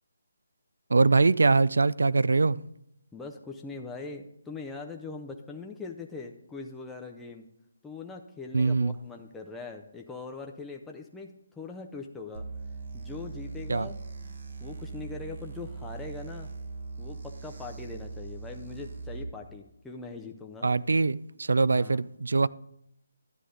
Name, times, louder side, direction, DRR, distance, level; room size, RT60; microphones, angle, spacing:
voice 1, 0.9-2.6 8.5-9.0 13.7-13.9 20.6-22.5, right 3 dB, 80° right, 0.3 m, -23 dB
voice 2, 3.1-7.4 7.8-12.5 12.9-14.0 14.2-16.5 17.0-20.7 21.7-22.0, left 4 dB, 5° left, 0.5 m, -41 dB
sound 1, 12.3-19.2, right 3 dB, 60° right, 1.4 m, -40 dB
11.5 x 8.2 x 3.8 m
hypercardioid pair, 165°, 0 cm